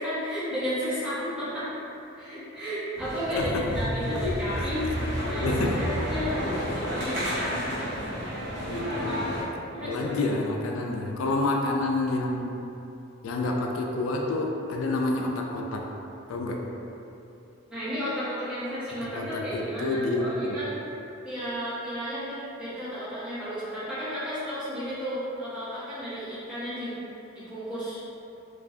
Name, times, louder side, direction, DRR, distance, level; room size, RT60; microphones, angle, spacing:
voice 1, 0.0-1.7 2.2-4.8 5.2-6.4 6.8-7.2 9.7-10.3 17.7-20.7 21.2-27.0 27.3-28.0, equal, 5° right, -14 dB, 1.2 m, -33 dB
sound 1, 2.9-9.4, equal, 55° right, 0.9 m, -30 dB
voice 2, 5.0-5.8 8.6-9.2 9.8-12.7 13.2-15.9 16.3-16.6 19.0-20.6, left 2 dB, 80° left, 1 dB, 0.3 m, -29 dB
4.6 x 2.3 x 2.6 m, 2.9 s
head